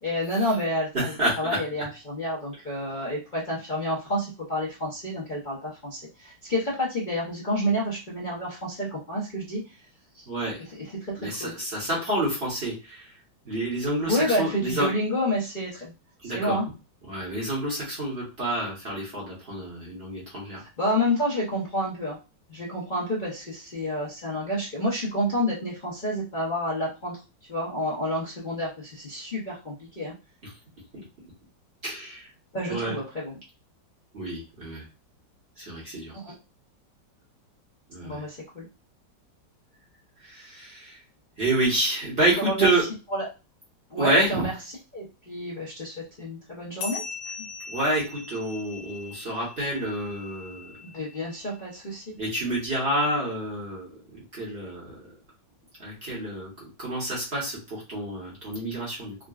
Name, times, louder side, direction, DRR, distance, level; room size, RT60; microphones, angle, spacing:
voice 1, 0.0-9.8 10.1-10.3 10.8-11.5 14.1-15.9 16.2-16.7 20.8-22.2 22.5-27.2 27.5-30.1 32.5-33.4 36.1-36.3 38.0-38.6 42.4-42.7 43.1-43.2 43.9-44.5 44.9-47.0 50.8-52.2, equal, 40° left, -7 dB, 0.7 m, -29 dB
voice 2, 0.9-1.6 10.3-10.6 11.2-13.1 13.4-14.9 16.2-16.6 17.1-20.6 30.9-31.0 31.8-32.3 32.7-33.0 34.1-34.8 35.6-36.1 37.9-38.2 40.2-41.0 41.4-42.8 44.0-44.5 47.7-50.8 52.2-55.1 55.8-56.5 56.8-59.1, right 1 dB, 40° right, -5 dB, 1.1 m, -28 dB
sound 1, 46.8-51.7, left 4 dB, 65° left, 0.9 m, -40 dB
3.7 x 2.2 x 2.3 m, 0.30 s
omnidirectional pair, 1.9 m